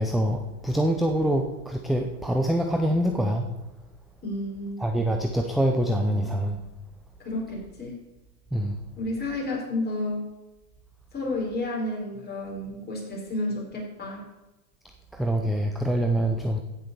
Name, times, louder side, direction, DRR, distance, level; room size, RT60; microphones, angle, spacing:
voice 1, 0.0-3.5 4.8-6.6 8.5-8.8 15.1-16.6, right 1 dB, ahead, 3 dB, 0.4 m, -25 dB
voice 2, 4.2-4.8 7.2-8.0 9.0-10.3 11.1-14.2, left 1 dB, 20° left, -2 dB, 4.8 m, -31 dB
15.5 x 5.8 x 6.8 m, 1.0 s
hypercardioid pair, 115°, 49 cm